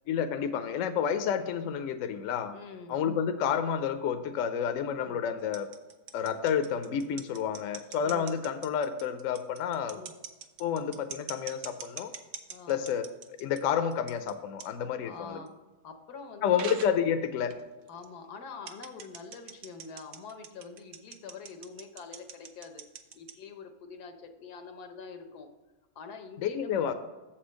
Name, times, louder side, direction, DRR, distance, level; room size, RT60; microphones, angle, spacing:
voice 1, 0.1-2.5 2.9-5.7 6.1-10.0 10.6-12.1 12.7-15.4 16.4-17.5 26.4-26.9, left 8 dB, 70° left, 9 dB, 0.9 m, -30 dB
voice 2, 2.5-3.0 5.0-5.2 8.0-8.3 9.9-10.2 12.5-12.9 15.0-15.5 15.8-16.6 17.9-22.8 23.1-25.5 25.9-26.9, left 5 dB, 85° left, 6 dB, 1.4 m, -45 dB
sound 1, 5.4-13.6 13.9-14.3 14.6-14.7 15.5-15.6 16.5-17.0 17.5-17.6 17.9-18.0 18.7-23.3, right 8 dB, 70° right, 1.1 m, -43 dB
7.4 x 4.4 x 6.3 m, 1.1 s
omnidirectional pair, 1.6 m